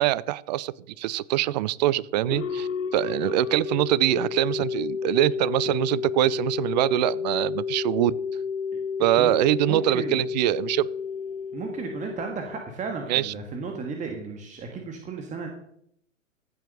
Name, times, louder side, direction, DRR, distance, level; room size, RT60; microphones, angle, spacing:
voice 1, 0.0-8.2 9.0-10.9 13.1-13.3, right 15 dB, 35° right, 23 dB, 0.5 m, -24 dB
sound 1, 2.2-12.9, left 6 dB, 80° left, 1.0 m, -31 dB
voice 2, 9.7-10.2 11.5-15.5, right 4 dB, 20° right, 4 dB, 1.7 m, -34 dB
15.0 x 7.5 x 6.6 m, 0.72 s
figure-of-eight pair, 105°, 39 cm